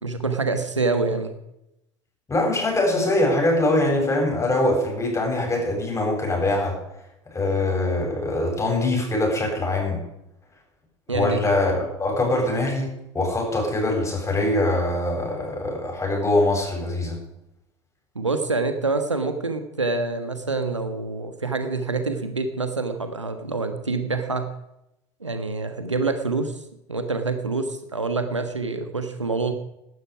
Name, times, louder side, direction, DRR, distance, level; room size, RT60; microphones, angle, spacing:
voice 1, 0.0-1.3 11.1-11.4 18.1-24.5 25.2-26.5 26.9-29.5, right 3 dB, 85° right, 8 dB, 1.5 m, -26 dB
voice 2, 2.3-6.8 7.3-10.0 11.1-17.2, left 2 dB, 20° left, 0 dB, 7.8 m, -23 dB
16.5 x 12.5 x 4.9 m, 0.85 s
figure-of-eight pair, 70°, 15 cm